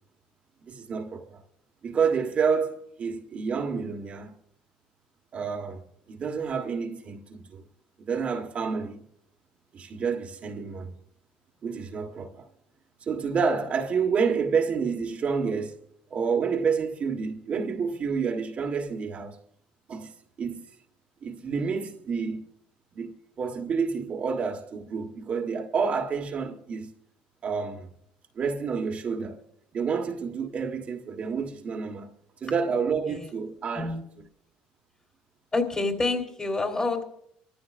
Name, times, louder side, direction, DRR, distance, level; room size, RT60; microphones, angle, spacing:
voice 1, 0.6-1.4 1.8-4.4 5.3-7.6 8.0-9.0 9.7-10.9 11.6-12.5 13.0-15.8 16.1-19.4 19.9-20.1 20.4-20.7 21.2-22.5 22.9-26.9 27.4-27.9 28.3-29.4 29.7-32.1 32.4-33.9, right 5 dB, 40° right, 1.4 m, -29 dB
voice 2, 35.5-37.0, left 3 dB, 25° left, 3.3 m, -27 dB
25.5 x 14.0 x 2.5 m
supercardioid pair, 90°, 3 cm